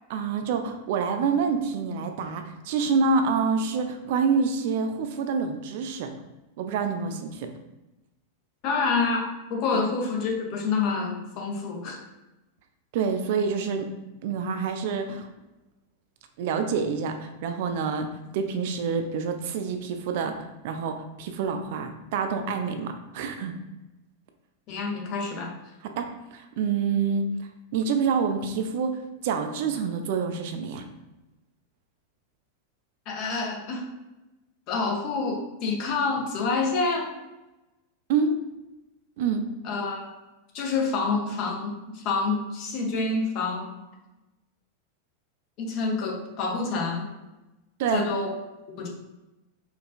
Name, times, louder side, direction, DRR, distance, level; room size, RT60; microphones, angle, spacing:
voice 1, 0.1-6.1 6.6-7.5 9.7-9.8 12.9-13.9 14.2-15.3 16.4-18.1 18.3-23.5 26.0-27.2 27.7-30.8 38.1-38.4 39.2-39.5 47.8-48.0, right 5 dB, 50° right, 6 dB, 0.3 m, -27 dB
voice 2, 8.6-12.0 24.7-25.5 33.1-33.8 34.7-37.1 39.6-40.1 40.5-43.7 45.6-47.1 47.9-48.3 48.8-48.9, left 4 dB, 40° left, 1 dB, 0.7 m, -27 dB
4.5 x 2.3 x 2.4 m, 1.0 s
figure-of-eight pair, 90°, 0 cm